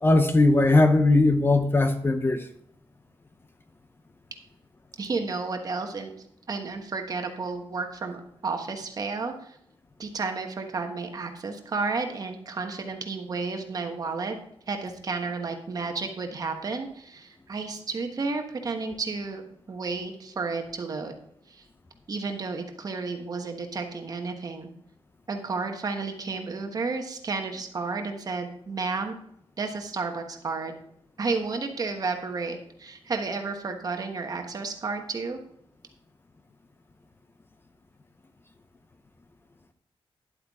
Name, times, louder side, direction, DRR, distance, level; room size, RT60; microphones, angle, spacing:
voice 1, 0.0-2.4, left 2 dB, 25° left, 8 dB, 0.6 m, -19 dB
voice 2, 5.0-9.6 10.0-14.4 14.7-19.4 19.7-21.1 21.5-21.6 22.1-24.7 25.3-29.1 29.6-30.7 31.2-35.4, right 4 dB, 40° right, 5 dB, 1.2 m, -32 dB
10.5 x 8.1 x 3.6 m, 0.70 s
wide cardioid pair, 155°, 10 cm